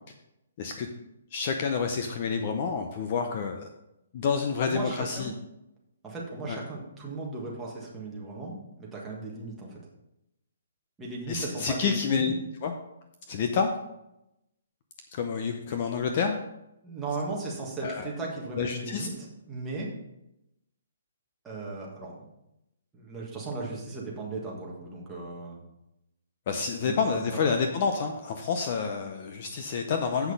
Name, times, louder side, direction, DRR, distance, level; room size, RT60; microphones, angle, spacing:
voice 1, 1.3-3.7 4.1-5.3 6.4-6.6 11.3-12.3 12.6-12.7 13.3-13.7 15.1-16.4 17.8-18.1 18.6-19.1 26.5-30.3, left 5 dB, 30° left, 5 dB, 0.6 m, -28 dB
voice 2, 4.7-5.3 6.0-9.7 11.0-12.3 16.8-19.1 19.5-19.9 21.4-22.3 22.9-25.6 26.8-27.6, right 3 dB, 5° right, -4 dB, 1.5 m, -36 dB
8.0 x 6.2 x 5.3 m, 0.87 s
hypercardioid pair, 175°, 0 cm